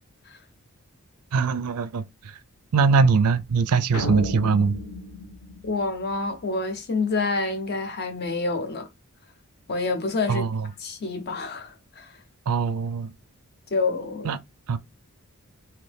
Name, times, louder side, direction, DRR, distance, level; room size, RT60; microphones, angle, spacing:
voice 1, 1.3-2.0 2.7-4.8 10.3-10.6 12.5-13.1 14.2-14.4 14.7-14.8, right 5 dB, 80° right, 0.4 m, -22 dB
sound 1, 3.9-6.4, left 1 dB, 80° left, 1.1 m, -33 dB
voice 2, 5.6-8.9 9.7-10.4 10.8-12.1 13.7-14.4, left 3 dB, 45° left, 0.8 m, -27 dB
2.9 x 2.7 x 3.4 m
head